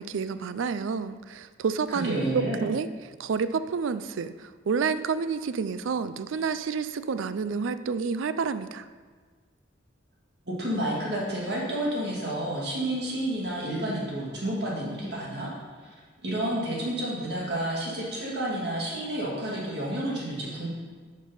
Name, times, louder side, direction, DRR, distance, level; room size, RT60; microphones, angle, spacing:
voice 1, 0.0-2.9 3.2-8.9, right 5 dB, 85° right, 13 dB, 0.4 m, -29 dB
voice 2, 1.9-2.6 10.5-15.5 15.8-15.9 16.2-20.7, right 1 dB, 55° right, -5 dB, 1.8 m, -30 dB
8.6 x 5.4 x 5.5 m, 1.5 s
head